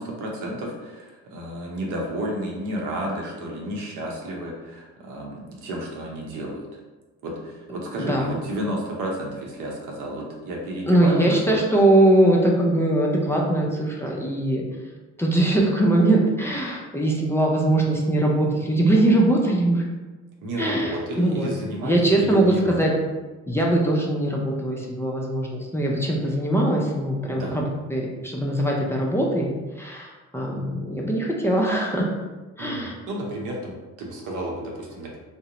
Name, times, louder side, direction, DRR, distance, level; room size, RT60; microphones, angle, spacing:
voice 1, 0.0-6.8 7.2-11.6 20.4-22.8 27.3-27.6 32.6-35.2, right 1 dB, 85° right, -1 dB, 0.7 m, -32 dB
voice 2, 8.0-8.4 10.9-14.6 15.2-19.8 20.6-21.5 21.8-22.9 23.5-27.6 27.9-29.5 29.8-32.1 32.6-32.9, right 1 dB, 10° left, -3 dB, 0.4 m, -21 dB
2.5 x 2.0 x 2.8 m, 1.2 s
cardioid pair, 90°, 30 cm